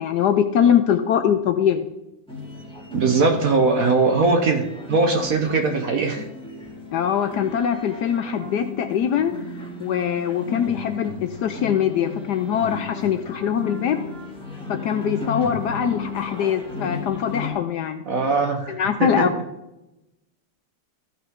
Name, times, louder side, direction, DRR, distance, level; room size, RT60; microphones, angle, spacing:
voice 1, 0.0-1.8 6.9-9.3 9.8-14.1 14.7-18.0 18.7-19.3, left 8 dB, 70° left, 8 dB, 1.0 m, -22 dB
sound 1, 2.3-17.5, left 4 dB, 5° left, 1.9 m, -35 dB
voice 2, 2.9-6.3 18.1-19.2, right 3 dB, 55° right, 4 dB, 1.1 m, -20 dB
15.0 x 5.8 x 3.6 m, 0.94 s
omnidirectional pair, 2.2 m